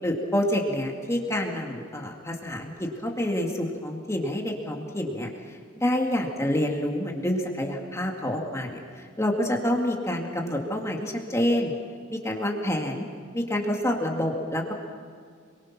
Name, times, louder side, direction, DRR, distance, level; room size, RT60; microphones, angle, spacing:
voice 1, 0.0-11.7 12.1-13.1 13.3-14.7, left 1 dB, 15° left, 1 dB, 2.1 m, -28 dB
28.0 x 23.0 x 6.0 m, 2.1 s
head